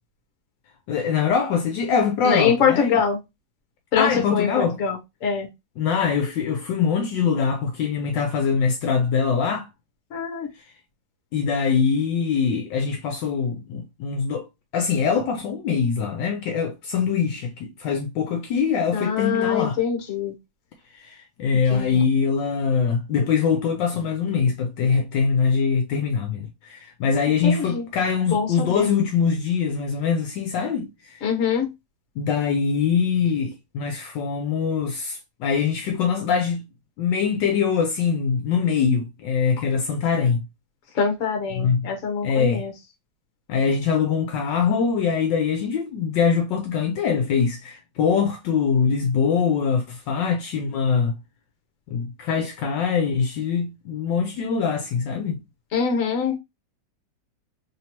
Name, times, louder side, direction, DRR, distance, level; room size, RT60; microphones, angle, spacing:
voice 1, 0.9-3.0 4.0-4.8 5.8-9.7 11.3-14.5 14.7-19.8 21.0-31.2 32.2-36.7 37.0-40.4 41.5-41.9 42.2-42.7 43.5-51.2 51.9-55.4, left 6 dB, 75° left, 1.2 m, -23 dB
voice 2, 2.2-3.2 3.9-5.5 10.1-10.5 18.9-20.3 21.7-22.0 27.4-27.9 28.3-28.9 31.2-31.7 41.0-42.7 55.7-56.4, left 6 dB, 50° left, 1.1 m, -24 dB
3.3 x 3.0 x 2.8 m
omnidirectional pair, 2.1 m